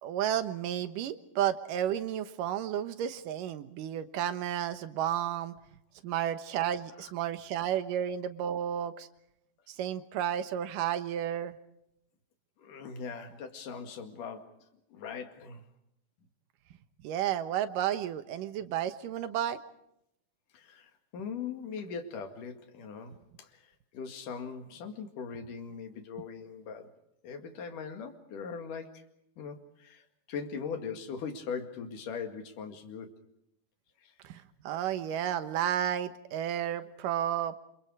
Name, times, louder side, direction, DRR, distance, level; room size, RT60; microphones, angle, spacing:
voice 1, 0.0-5.5 6.0-9.1 9.7-11.6 17.0-19.6 34.2-37.6, right 10 dB, 90° right, 11 dB, 2.8 m, -32 dB
voice 2, 12.6-14.6 14.9-15.6 20.5-26.9 27.2-29.1 29.4-33.2 34.0-34.1, left 6 dB, 75° left, 6 dB, 3.7 m, -40 dB
28.0 x 26.5 x 4.8 m, 0.78 s
omnidirectional pair, 3.7 m